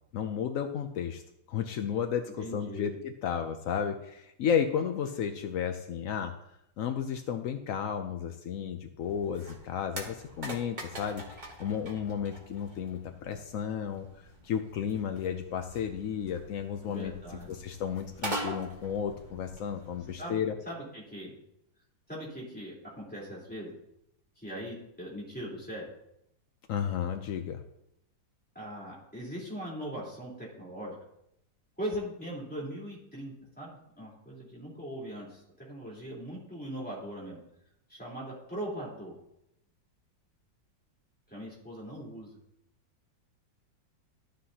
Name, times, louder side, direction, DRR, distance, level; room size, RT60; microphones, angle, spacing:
voice 1, 0.1-1.2 1.5-6.3 6.8-11.2 11.6-17.1 17.5-20.6 26.7-27.6, left 8 dB, 75° left, 6 dB, 0.7 m, -33 dB
voice 2, 2.4-3.0 16.9-17.5 20.2-21.4 22.1-23.7 24.4-25.9 28.6-31.0 31.8-37.4 37.9-39.1 41.3-42.4, equal, 5° left, -7 dB, 3.5 m, -40 dB
sound 1, 9.0-20.1, right 1 dB, 25° right, 1.5 m, -43 dB
13.5 x 7.6 x 2.8 m, 0.80 s
omnidirectional pair, 2.1 m